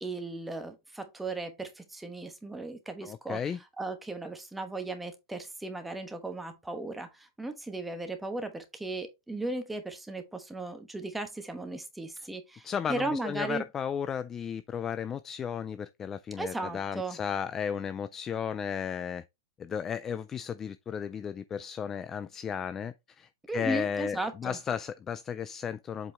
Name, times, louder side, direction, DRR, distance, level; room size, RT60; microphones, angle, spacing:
voice 1, 0.0-3.4 3.8-13.6 16.4-17.2 23.5-24.6, right 2 dB, 5° right, 1.1 m, -36 dB
voice 2, 3.0-3.6 12.2-12.3 12.6-19.2 19.6-26.1, left 7 dB, 15° left, 0.3 m, -34 dB
7.6 x 4.7 x 3.4 m
supercardioid pair, 160°, 2 cm